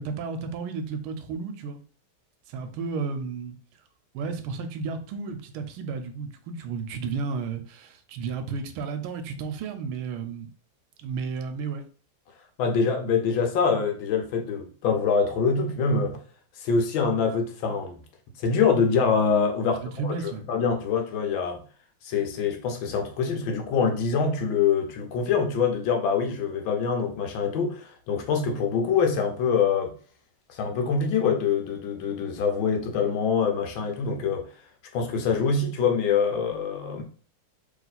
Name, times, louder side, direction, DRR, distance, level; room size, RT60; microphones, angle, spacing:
voice 1, 0.0-1.8 2.5-3.6 4.1-10.5 11.0-11.8 19.7-20.5, right 5 dB, 85° right, 1.4 m, -33 dB
voice 2, 12.6-16.2 16.6-18.0 18.4-20.1 20.5-21.6 22.0-29.9 30.5-34.5 34.9-37.0, left 5 dB, 75° left, 1.5 m, -25 dB
3.3 x 3.0 x 4.0 m
omnidirectional pair, 2.3 m